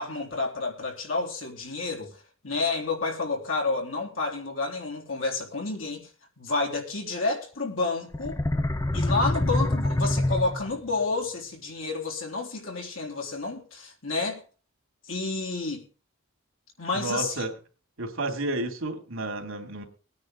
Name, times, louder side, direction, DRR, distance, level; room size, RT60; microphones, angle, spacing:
voice 1, 0.0-2.2 2.4-6.1 6.4-8.4 8.9-14.4 15.1-15.8 16.8-17.4, left 3 dB, 75° left, 3.5 m, -30 dB
sound 1, 8.1-10.9, left 1 dB, 15° left, 0.6 m, -26 dB
voice 2, 16.9-17.5 18.0-19.8, right 2 dB, 85° right, 2.8 m, -31 dB
19.5 x 9.6 x 3.9 m
head